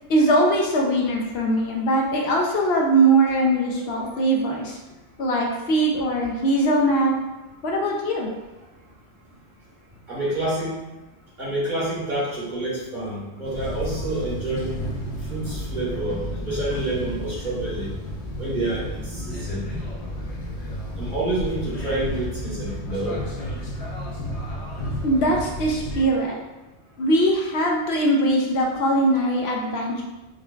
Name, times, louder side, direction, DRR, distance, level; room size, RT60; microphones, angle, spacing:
voice 1, 0.1-4.8 5.2-7.2 7.6-8.3 25.0-26.4 27.0-30.0, right 1 dB, 70° left, -1 dB, 0.8 m, -21 dB
voice 2, 10.1-10.8 11.4-14.7 15.2-17.9 18.4-19.7 21.0-23.2, right 1 dB, 45° right, -8 dB, 1.3 m, -28 dB
sound 1, 13.4-26.1, equal, 45° left, 0.5 m, -32 dB
5.0 x 2.2 x 2.3 m, 1.1 s
omnidirectional pair, 1.1 m